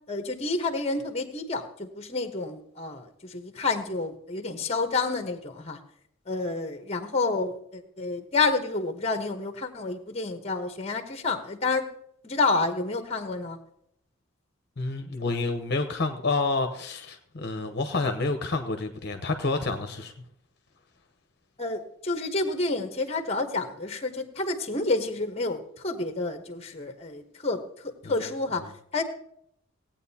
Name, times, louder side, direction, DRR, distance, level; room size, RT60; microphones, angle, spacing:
voice 1, 0.1-5.8 6.3-11.9 12.2-13.6 21.6-29.0, left 3 dB, 30° left, 7 dB, 1.0 m, -29 dB
voice 2, 14.8-20.1 28.0-28.1, left 3 dB, 50° left, 5 dB, 0.8 m, -29 dB
17.5 x 8.8 x 2.8 m, 0.72 s
head